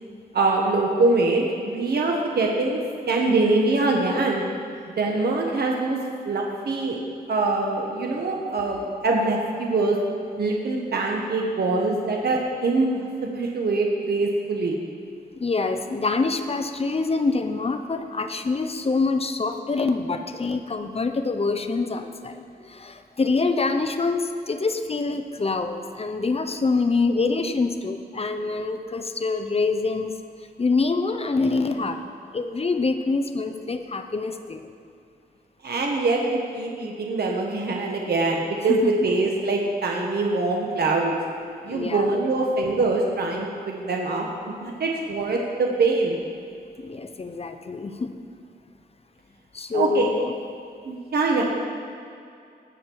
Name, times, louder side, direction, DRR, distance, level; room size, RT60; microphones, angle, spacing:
voice 1, 0.3-2.8 3.1-4.4 5.0-6.0 6.2-7.0 7.3-10.0 10.4-14.8 35.6-41.2 41.6-46.2 49.7-50.1 50.8-51.4, right 3 dB, 70° right, 0 dB, 1.3 m, -23 dB
voice 2, 15.3-30.1 30.6-32.0 32.3-34.7 38.7-38.9 41.7-42.1 46.8-48.1 49.5-50.3, left 3 dB, 35° left, 7 dB, 0.7 m, -25 dB
18.5 x 7.4 x 4.7 m, 2.5 s
wide cardioid pair, 115°, 17 cm